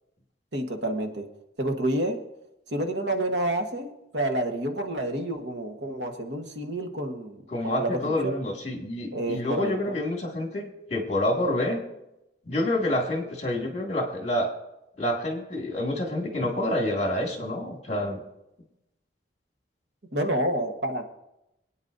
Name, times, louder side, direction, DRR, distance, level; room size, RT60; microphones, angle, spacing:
voice 1, 0.5-1.3 1.6-2.2 2.7-8.4 9.1-10.0 20.1-21.0, right 1 dB, 65° right, 4 dB, 1.4 m, -29 dB
voice 2, 7.5-11.8 12.5-14.5 15.0-18.2, left 1 dB, 35° left, 1 dB, 2.2 m, -28 dB
26.5 x 9.4 x 2.7 m, 0.88 s
head